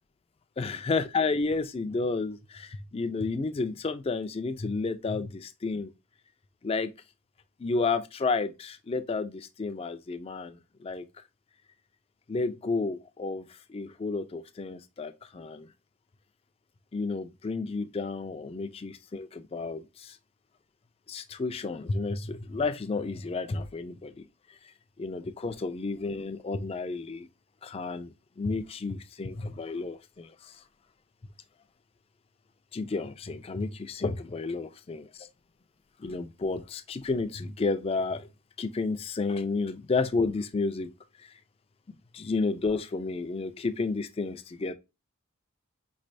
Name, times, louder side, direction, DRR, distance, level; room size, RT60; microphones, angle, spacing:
voice 1, 0.6-5.9 6.6-6.9 7.6-11.0 12.3-15.7 16.9-20.2 21.1-24.1 25.0-27.3 27.6-30.6 32.7-35.3 36.0-38.3 38.6-40.9 41.2-41.3 41.9-44.7, left 3 dB, 25° left, 0.3 m, -31 dB
5.1 x 3.2 x 2.5 m
head